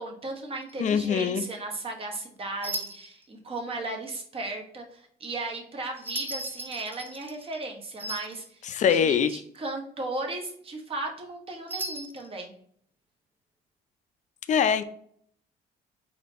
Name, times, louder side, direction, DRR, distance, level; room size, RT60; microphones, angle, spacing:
voice 1, 0.0-8.6 8.9-12.5, right 2 dB, 35° right, 2 dB, 1.2 m, -36 dB
sound 1, 0.6-0.9 2.6-3.2 6.0-7.7 8.0-8.4 11.7-12.3, right 2 dB, 10° right, 0.5 m, -36 dB
voice 2, 0.8-1.4 8.7-9.3 14.5-14.8, left 7 dB, 45° left, 10 dB, 0.5 m, -23 dB
4.2 x 2.8 x 4.1 m, 0.62 s
cardioid pair, 110°, 17 cm